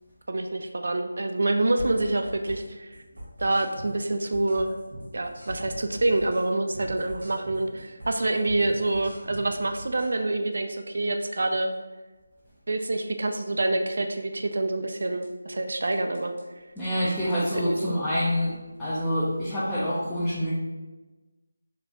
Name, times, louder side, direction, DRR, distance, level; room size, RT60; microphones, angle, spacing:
voice 1, 0.3-3.0 3.4-4.7 5.1-11.7 12.7-16.3 17.5-18.0, right 2 dB, 60° right, 5 dB, 0.4 m, -27 dB
sound 1, 1.8-2.7 2.9-6.5 6.7-10.1 14.9-15.3 15.8-16.4 16.8-17.4, equal, 85° right, 1.4 m, -41 dB
voice 2, 16.8-18.5 18.8-20.5, equal, 5° left, -13 dB, 0.5 m, -26 dB
4.1 x 2.4 x 2.8 m, 1.2 s
figure-of-eight pair, 170°, 0 cm